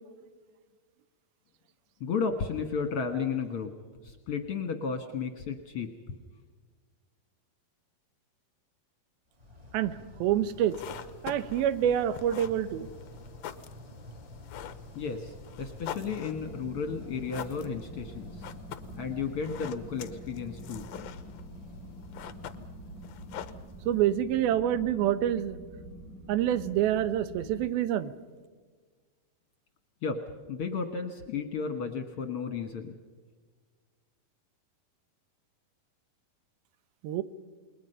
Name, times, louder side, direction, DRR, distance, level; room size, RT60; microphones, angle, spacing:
voice 1, 2.0-3.7 4.0-5.9 14.9-18.5 19.0-20.9 30.0-30.2 30.5-33.0, left 5 dB, 55° left, 6 dB, 1.7 m, -33 dB
sound 1, 9.3-24.4, left 1 dB, 20° right, 1.0 m, -50 dB
voice 2, 9.7-10.8 11.2-12.9 23.9-25.6 26.3-28.1 37.0-37.2, right 11 dB, 85° right, 14 dB, 2.7 m, -27 dB
sound 2, 10.5-24.1, left 10 dB, 80° left, 1.5 m, -46 dB
sound 3, 16.3-27.7, equal, 65° right, 5.6 m, -46 dB
29.0 x 21.0 x 5.6 m, 1.5 s
omnidirectional pair, 4.2 m